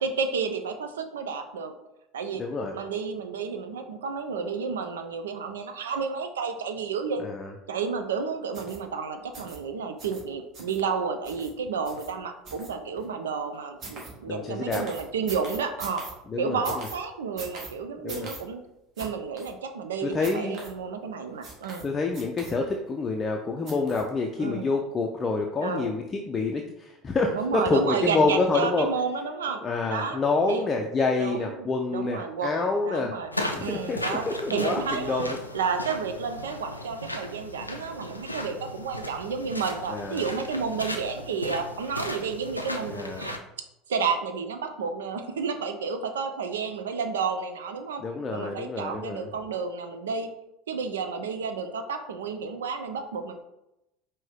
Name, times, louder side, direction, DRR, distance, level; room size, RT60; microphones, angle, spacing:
voice 1, 0.0-1.7 2.1-2.4 2.7-7.2 7.7-16.0 16.4-18.6 19.0-21.9 24.4-24.7 25.6-25.9 27.3-29.6 29.9-30.2 30.5-30.7 31.2-33.3 33.6-34.2 34.5-35.3 35.5-43.5 43.9-48.0 48.3-50.3 50.7-53.4, right 5 dB, 70° right, 7 dB, 0.4 m, -31 dB
voice 2, 2.4-2.7 7.2-7.5 14.3-14.8 16.3-16.9 18.0-18.3 20.0-20.6 21.8-28.9 29.6-33.1 33.6-35.4 39.9-40.2 42.9-43.2 48.0-49.3, left 3 dB, 25° left, 2 dB, 0.5 m, -27 dB
sound 1, 8.5-8.8 9.3-9.6 10.0-10.2 10.5-10.8 11.2-11.5 11.8-12.1 12.4-13.0 13.8-14.1 14.7-16.1 16.6-17.0 17.4-17.7 18.1-18.4 19.0-19.1 19.4-19.5 20.2-20.7 21.4-21.8 22.1-22.8 23.7-24.1 24.5-24.6, right 3 dB, 40° right, 1.3 m, -41 dB
sound 2, 33.3-43.4, left 1 dB, 90° left, 0.4 m, -36 dB
5.3 x 2.7 x 3.5 m, 0.88 s
figure-of-eight pair, 70°, 0 cm